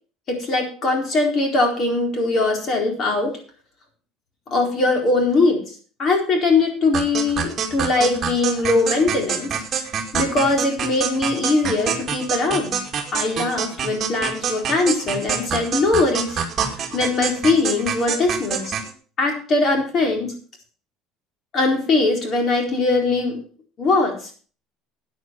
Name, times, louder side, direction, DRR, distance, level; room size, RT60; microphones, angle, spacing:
voice 1, 0.3-3.4 4.5-5.7 6.0-9.6 10.1-12.8 13.1-16.4 16.9-18.7 19.2-20.3 21.5-23.4 23.8-24.1, left 3 dB, 40° left, 2 dB, 4.2 m, -21 dB
sound 1, 6.9-18.9, right 7 dB, 30° right, 2.3 m, -26 dB
13.5 x 9.3 x 4.6 m, 0.39 s
cardioid pair, 145°, 0 cm